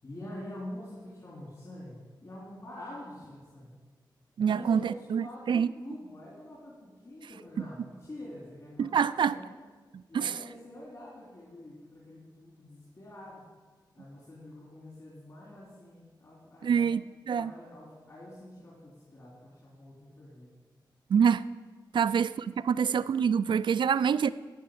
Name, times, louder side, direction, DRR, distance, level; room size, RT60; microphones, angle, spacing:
voice 1, 0.0-3.7 4.4-9.5 10.1-13.5 13.9-16.9 17.3-20.5 21.9-22.1 22.6-22.9, left 1 dB, 40° left, 3.4 m, -46 dB
voice 2, 4.4-5.7 8.8-9.4 9.9-10.3 16.6-17.5 21.1-21.4 21.9-24.3, right 7 dB, 75° right, 0.4 m, -26 dB
13.0 x 6.7 x 8.6 m
wide cardioid pair, 175°, 8 cm